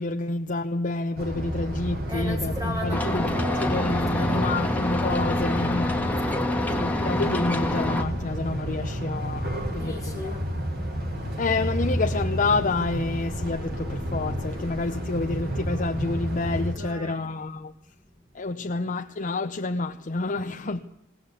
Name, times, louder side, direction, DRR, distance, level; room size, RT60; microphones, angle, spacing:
voice 1, 0.0-6.0 6.7-10.4 11.4-17.7 18.3-20.8, left 3 dB, 40° left, 0.7 m, -28 dB
sound 1, 1.2-16.7, equal, 55° right, 3.5 m, -31 dB
voice 2, 2.1-4.9 6.1-6.8 9.7-10.4 10.7-11.4 16.7-17.3, left 1 dB, 15° right, 1.6 m, -38 dB
sound 2, 2.9-8.0, left 1 dB, 10° left, 1.5 m, -27 dB
20.5 x 17.5 x 8.5 m
head